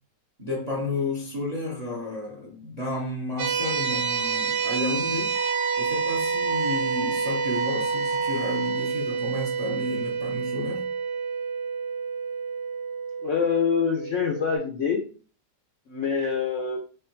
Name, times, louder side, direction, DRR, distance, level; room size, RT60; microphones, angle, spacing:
voice 1, 0.4-5.4 5.8-10.8, left 2 dB, 35° right, 0.6 m, -32 dB
sound 1, 3.4-14.6, right 6 dB, 85° right, 1.3 m, -29 dB
Wind instrument woodwind instrument, 5.3-8.8, right 1 dB, 65° right, 1.2 m, -32 dB
voice 2, 13.2-15.0 15.9-16.8, left 6 dB, 65° left, 0.8 m, -25 dB
3.4 x 3.1 x 4.4 m
omnidirectional pair, 1.9 m